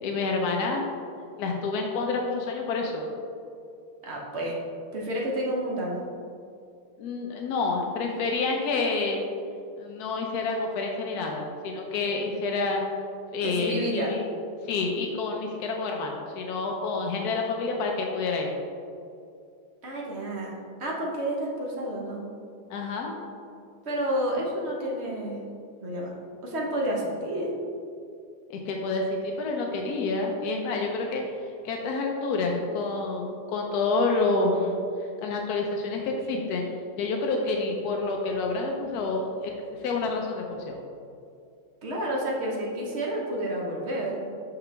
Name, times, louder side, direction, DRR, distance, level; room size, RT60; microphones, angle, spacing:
voice 1, 0.0-0.8 1.4-3.1 7.0-9.2 9.8-12.8 13.3-14.2 14.7-18.5 22.7-23.1 28.5-31.2 31.6-34.8 35.2-36.6 37.0-39.5 39.8-40.8, left 3 dB, 80° left, 1 dB, 0.8 m, -28 dB
voice 2, 4.0-4.6 4.9-6.0 13.4-14.1 19.8-22.2 23.8-25.5 25.8-26.1 26.4-27.6 41.8-44.2, right 1 dB, 50° right, -3 dB, 0.8 m, -30 dB
5.8 x 5.8 x 3.3 m, 2.5 s
omnidirectional pair, 2.3 m